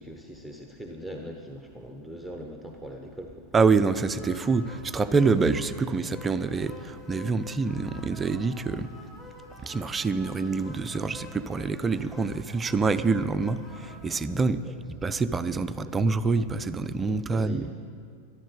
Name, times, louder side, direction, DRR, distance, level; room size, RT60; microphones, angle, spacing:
voice 1, 0.0-3.5 14.4-14.8 15.8-16.0 17.1-17.7, equal, 5° left, 2 dB, 1.0 m, -41 dB
voice 2, 3.5-8.9 9.6-14.6 15.0-17.7, right 4 dB, 15° right, 11 dB, 0.5 m, -26 dB
sound 1, 3.8-13.9, left 2 dB, 30° left, 4.4 m, -48 dB
13.0 x 11.5 x 7.9 m, 2.3 s
figure-of-eight pair, 90°, 0 cm